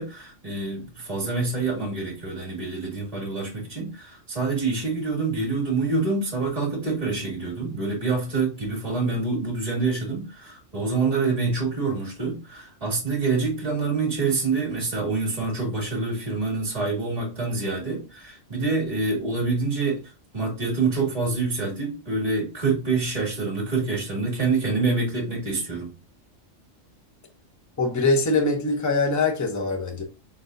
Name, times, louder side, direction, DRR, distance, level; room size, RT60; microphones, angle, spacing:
voice 1, 0.0-20.0 20.3-25.9, right 3 dB, 30° right, 2.0 m, -26 dB
voice 2, 27.8-30.0, left 3 dB, 15° left, 0.7 m, -23 dB
4.2 x 3.9 x 2.5 m
omnidirectional pair, 1.4 m